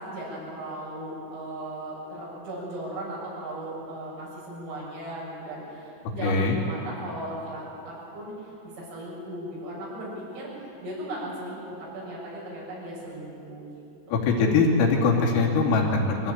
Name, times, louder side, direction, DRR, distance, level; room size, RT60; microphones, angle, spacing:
voice 1, 0.0-6.4 6.7-13.7, right 1 dB, 80° right, -5 dB, 9.7 m, -37 dB
voice 2, 6.2-6.6 14.1-16.3, left 4 dB, 85° left, -2 dB, 5.5 m, -22 dB
23.5 x 17.5 x 8.9 m, 2.8 s
omnidirectional pair, 5.8 m